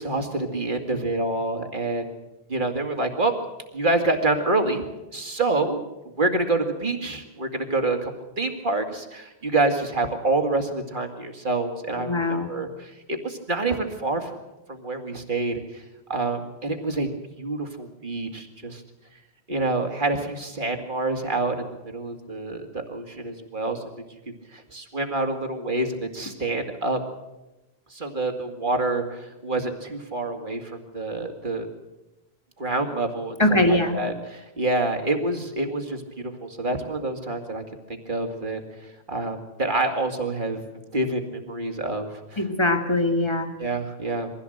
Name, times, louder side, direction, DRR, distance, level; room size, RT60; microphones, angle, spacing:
voice 1, 0.0-2.1 2.5-3.3 3.7-4.8 5.1-5.8 6.2-8.1 8.4-14.3 14.7-15.8 16.1-17.1 17.4-18.8 19.5-21.6 21.8-23.8 24.5-27.0 27.9-31.7 32.6-37.6 37.9-38.6 39.1-40.6 40.9-42.5 43.6-44.3, right 2 dB, 50° right, 4 dB, 2.4 m, -27 dB
voice 2, 12.0-12.5 33.4-34.0 42.4-43.5, left 1 dB, 25° left, 5 dB, 2.2 m, -22 dB
22.5 x 15.5 x 7.9 m, 1.0 s
omnidirectional pair, 1.1 m